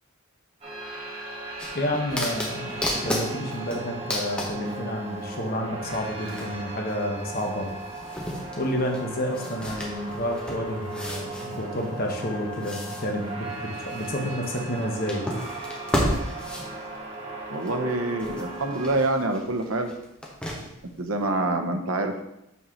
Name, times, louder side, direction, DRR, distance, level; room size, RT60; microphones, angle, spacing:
sound 1, 0.6-18.9, right 2 dB, 25° right, 1.5 m, -37 dB
sound 2, 1.6-5.3 5.8-17.9 18.2-20.9 21.3-21.4, equal, 5° left, 1.0 m, -34 dB
voice 1, 1.7-7.7 8.6-15.2, equal, 45° left, 0 dB, 1.2 m, -30 dB
voice 2, 17.5-19.9 21.0-22.2, right 2 dB, 85° right, 5 dB, 0.9 m, -26 dB
5.5 x 4.3 x 6.3 m, 0.85 s
head